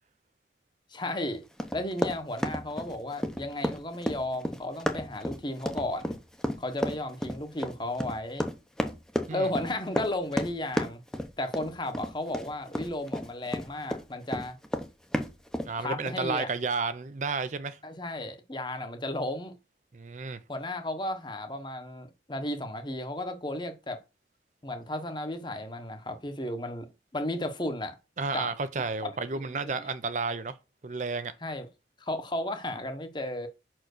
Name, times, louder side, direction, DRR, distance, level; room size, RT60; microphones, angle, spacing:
voice 1, 0.9-1.4 1.7-6.2 6.6-8.5 9.3-11.0 11.4-14.6 15.8-16.5 17.8-19.5 20.5-24.0 24.6-26.9 27.1-27.9 28.3-28.5 29.0-29.1 29.6-29.9 31.4-31.7 32.0-33.5, left 1 dB, 25° left, 1.0 m, -34 dB
Run, 1.6-14.0 14.3-15.7, equal, 5° left, 0.7 m, -31 dB
voice 2, 15.7-17.8 19.9-20.4 28.2-30.6 30.8-31.3, right 4 dB, 40° right, 0.5 m, -31 dB
5.8 x 4.5 x 6.5 m
head